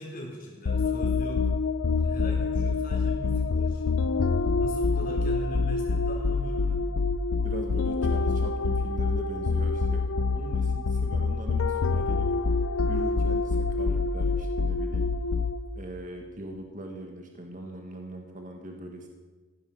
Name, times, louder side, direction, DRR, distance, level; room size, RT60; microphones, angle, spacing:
voice 1, 0.0-1.5 2.0-4.1 4.6-6.8, equal, 40° left, -1 dB, 3.9 m, -40 dB
sound 1, 0.7-15.8, left 4 dB, 70° left, 0.5 m, -26 dB
voice 2, 7.4-12.6 12.9-15.1 15.7-19.1, right 1 dB, 35° right, 2 dB, 1.7 m, -40 dB
15.0 x 12.5 x 5.6 m, 1.3 s
head